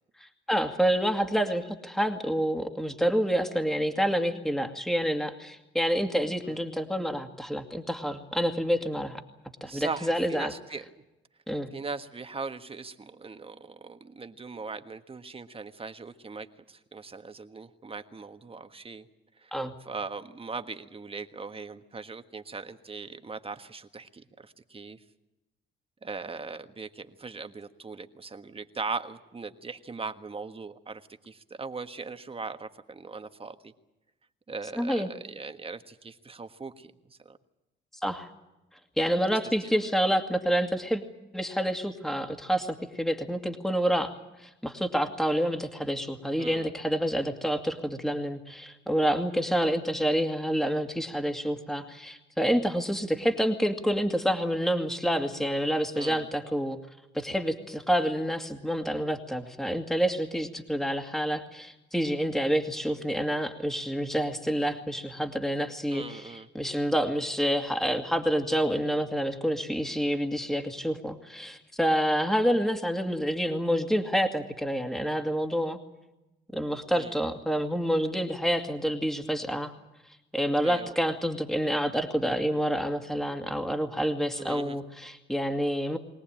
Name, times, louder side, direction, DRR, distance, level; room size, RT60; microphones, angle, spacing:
voice 1, 0.2-9.2 9.6-10.5 11.5-11.7 19.5-19.7 34.8-35.1 38.0-38.3 39.0-41.0 41.3-44.1 44.4-56.8 57.1-75.8 76.5-79.7 80.3-86.0, equal, ahead, 5 dB, 2.3 m, -28 dB
voice 2, 9.7-10.8 11.7-19.1 19.4-19.5 19.8-25.0 26.0-33.7 34.5-37.4 39.6-39.7 46.4-46.7 55.9-56.3 65.9-66.5 76.9-77.2 80.6-80.9 84.4-84.8, right 4 dB, 30° right, 8 dB, 1.6 m, -39 dB
23.5 x 18.0 x 9.0 m, 0.97 s
cardioid pair, 90°, 20 cm